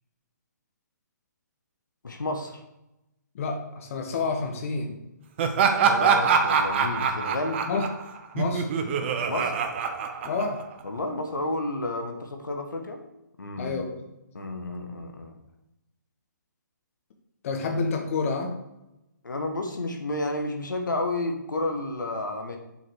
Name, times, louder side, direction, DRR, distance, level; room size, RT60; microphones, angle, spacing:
voice 1, 2.0-2.6 5.8-7.6 9.3-9.6 10.8-13.0 13.4-13.7 14.3-15.3 19.2-22.6, left 2 dB, 80° left, 3 dB, 1.2 m, -31 dB
voice 2, 3.3-5.0 7.7-7.8 8.3-8.7 10.2-10.6 13.6-14.1 17.4-18.6, left 4 dB, 45° left, 4 dB, 1.3 m, -29 dB
Laughter, 5.4-10.8, right 6 dB, 35° right, 0.8 m, -24 dB
7.0 x 4.7 x 4.6 m, 0.92 s
figure-of-eight pair, 140°, 10 cm